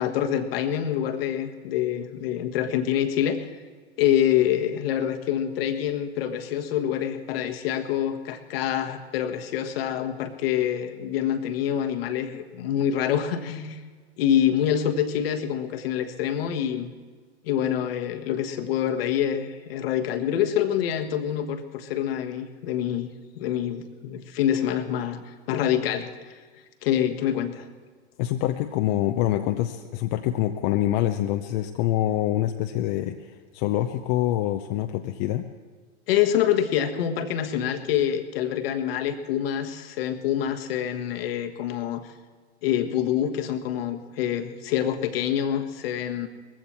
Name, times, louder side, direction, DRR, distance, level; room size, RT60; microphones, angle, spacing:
voice 1, 0.0-3.5 4.0-13.8 14.2-16.9 17.4-23.1 23.3-26.4 26.8-27.7 36.1-42.0 42.6-46.3, left 10 dB, 60° left, 7 dB, 1.4 m, -26 dB
voice 2, 28.2-33.3 33.5-35.5, left 13 dB, 45° left, 6 dB, 0.7 m, -25 dB
20.0 x 15.0 x 4.3 m, 1.5 s
hypercardioid pair, 110°, 34 cm